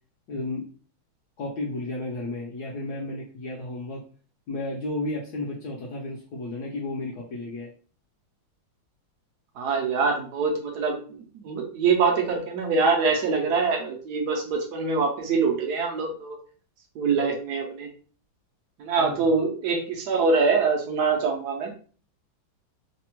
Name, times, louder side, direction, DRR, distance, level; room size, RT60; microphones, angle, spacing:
voice 1, 0.3-0.6 1.4-4.0 4.5-7.7 18.9-19.2, left 2 dB, 70° left, -3 dB, 0.9 m, -33 dB
voice 2, 9.6-16.4 17.0-17.9 18.8-21.7, right 4 dB, 75° right, 2 dB, 0.9 m, -24 dB
3.3 x 2.1 x 2.9 m, 0.42 s
omnidirectional pair, 2.2 m